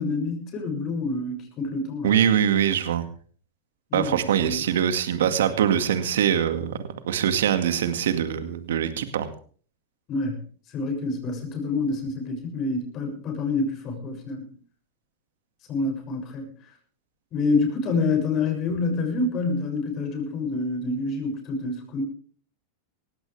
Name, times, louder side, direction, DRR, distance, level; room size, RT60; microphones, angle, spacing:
voice 1, 0.0-2.1 3.9-4.6 10.1-10.4 10.7-14.4 15.7-16.5 17.3-22.0, left 3 dB, 40° left, 4 dB, 6.9 m, -27 dB
voice 2, 2.0-3.1 3.9-6.8 7.1-9.3, right 9 dB, 85° right, 9 dB, 2.1 m, -23 dB
19.0 x 16.5 x 3.4 m, 0.43 s
hypercardioid pair, 125°, 0 cm